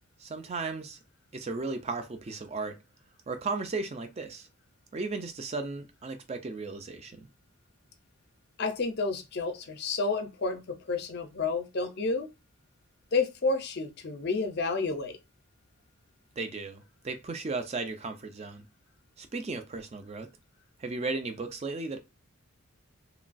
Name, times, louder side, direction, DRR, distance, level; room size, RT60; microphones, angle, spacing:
voice 1, 0.2-1.0 1.3-2.8 3.3-4.5 4.9-7.3 16.4-18.7 19.2-20.3 20.8-22.0, right 3 dB, 30° right, 0.4 m, -35 dB
voice 2, 8.6-12.3 13.1-15.1, left 3 dB, 50° left, 0.5 m, -30 dB
3.0 x 2.3 x 2.5 m
head